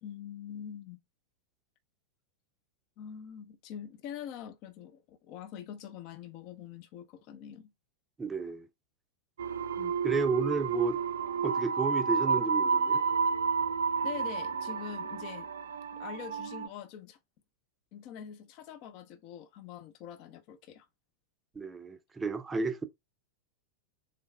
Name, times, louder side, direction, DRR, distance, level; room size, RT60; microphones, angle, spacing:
voice 1, 0.0-1.0 3.0-7.7 9.8-9.9 14.0-15.5 15.9-17.2 17.9-20.9, left 9 dB, 40° left, 0.6 m, -44 dB
voice 2, 8.2-8.7 10.0-11.0 11.4-13.0 21.5-22.8, right 4 dB, 15° right, 0.6 m, -32 dB
sound 1, 9.4-16.7, right 5 dB, 65° right, 0.3 m, -30 dB
3.9 x 3.1 x 3.3 m
figure-of-eight pair, 90°, 0 cm